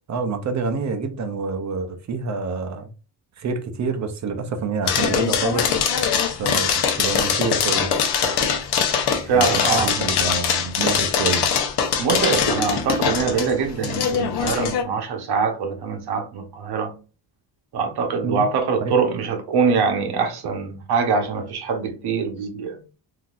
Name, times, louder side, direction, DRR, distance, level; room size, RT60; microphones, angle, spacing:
voice 1, 0.1-2.9 3.4-5.7 6.4-7.9 9.3-9.5 9.7-11.5 18.2-18.4 18.8-19.0, right 4 dB, 40° right, 0.6 m, -27 dB
sound 1, 4.9-14.8, left 7 dB, 60° left, 0.8 m, -22 dB
voice 2, 9.2-9.9 12.0-16.9 17.7-22.8, right 5 dB, 60° right, 0.9 m, -23 dB
3.7 x 2.7 x 2.4 m
cardioid pair, 145°, 45 cm